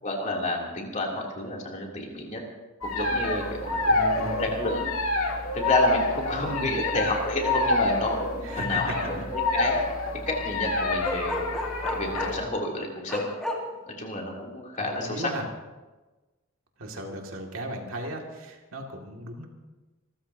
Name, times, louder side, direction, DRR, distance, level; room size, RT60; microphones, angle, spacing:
voice 1, 0.0-2.4 2.8-3.9 4.4-4.9 5.5-9.8 10.3-11.4 11.8-13.3 13.9-15.3, left 1 dB, 35° left, -1 dB, 3.2 m, -30 dB
sound 1, 2.8-12.4, left 2 dB, 80° left, 2.0 m, -27 dB
voice 2, 3.9-4.5 6.3-6.7 8.4-8.9 15.0-15.4 16.8-19.5, right 1 dB, 70° right, 1 dB, 2.4 m, -36 dB
Bark, 11.0-12.4 13.1-13.6, left 1 dB, 5° left, 2.5 m, -31 dB
26.0 x 14.5 x 2.9 m, 1.2 s
head